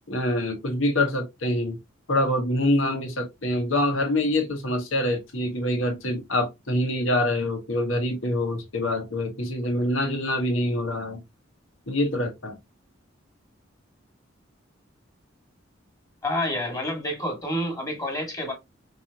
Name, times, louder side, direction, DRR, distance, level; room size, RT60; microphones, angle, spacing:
voice 1, 0.1-1.8 2.1-11.2 11.9-12.6, left 1 dB, 85° left, 1.5 m, -25 dB
voice 2, 16.2-18.5, left 1 dB, 20° left, 1.8 m, -28 dB
5.3 x 3.2 x 2.8 m
head